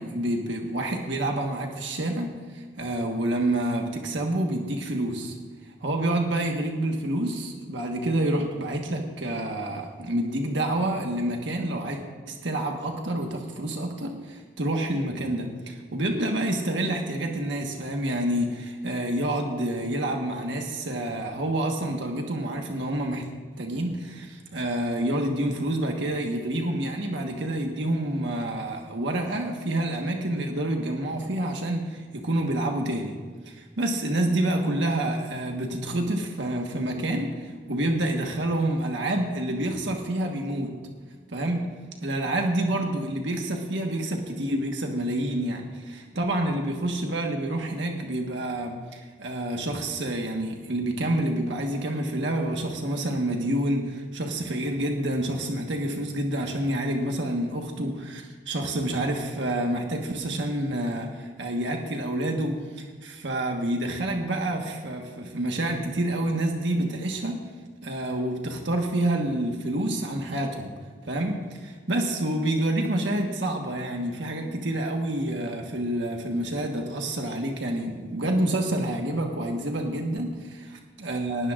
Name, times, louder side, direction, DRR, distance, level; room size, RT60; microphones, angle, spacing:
voice 1, 0.0-5.4 5.8-12.0 12.3-23.2 23.6-33.2 33.5-40.7 41.3-41.7 42.0-67.4 67.8-70.7 71.0-80.7 81.0-81.5, right 1 dB, 75° right, 2 dB, 1.4 m, -28 dB
19.5 x 17.5 x 2.5 m, 1.5 s
head